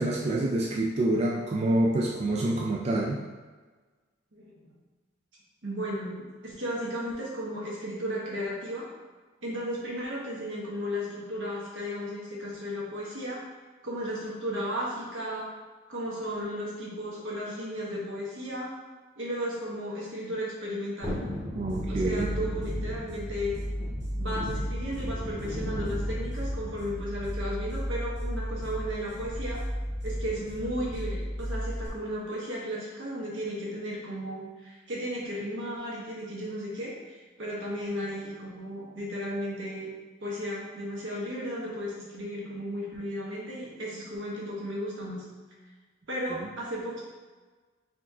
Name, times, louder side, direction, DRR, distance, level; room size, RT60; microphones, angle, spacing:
voice 1, 0.0-3.2 21.5-22.3, right 1 dB, 35° right, -2 dB, 0.3 m, -27 dB
voice 2, 4.3-4.6 5.6-8.9 9.4-13.4 13.8-15.5 15.9-18.7 19.2-21.2 21.9-23.6 24.2-29.6 30.0-39.9 40.2-45.2 46.1-47.0, equal, 80° right, -4 dB, 1.2 m, -34 dB
Thunderstorm, 21.0-31.2 31.6-31.7, left 1 dB, 15° right, 0.9 m, -39 dB
sound 1, 21.7-31.9, equal, 60° right, 1.4 m, -34 dB
4.2 x 2.5 x 4.1 m, 1.4 s
head